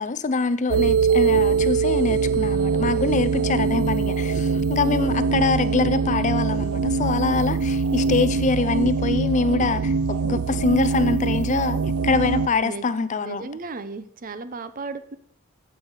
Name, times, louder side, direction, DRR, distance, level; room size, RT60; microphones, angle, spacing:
voice 1, 0.0-11.8 12.0-13.5, left 4 dB, 35° left, 0.4 m, -24 dB
sound 1, 0.7-12.5, right 5 dB, 90° right, 0.5 m, -23 dB
voice 2, 3.3-3.9 4.7-5.2 12.0-12.9 13.2-15.2, right 3 dB, 40° right, 0.6 m, -35 dB
14.5 x 5.5 x 5.5 m
head